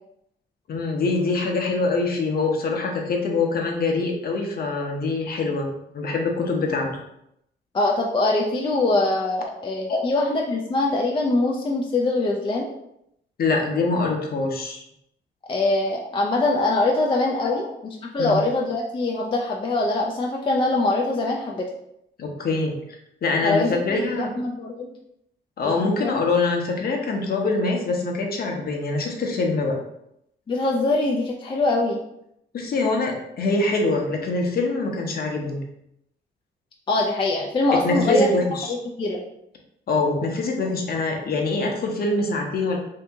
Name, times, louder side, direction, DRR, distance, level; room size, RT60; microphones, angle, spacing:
voice 1, 0.7-6.9 9.9-10.1 13.4-14.8 18.2-18.4 22.2-22.7 23.2-24.3 25.6-29.8 32.5-35.6 37.8-38.7 39.9-42.8, left 3 dB, 50° left, 1 dB, 0.8 m, -24 dB
voice 2, 7.7-12.7 15.5-21.7 23.4-24.9 25.6-26.1 30.5-32.0 36.9-38.3 38.7-39.2, left 2 dB, 25° left, -1 dB, 0.4 m, -23 dB
2.8 x 2.6 x 3.5 m, 0.79 s
cardioid pair, 90°, 20 cm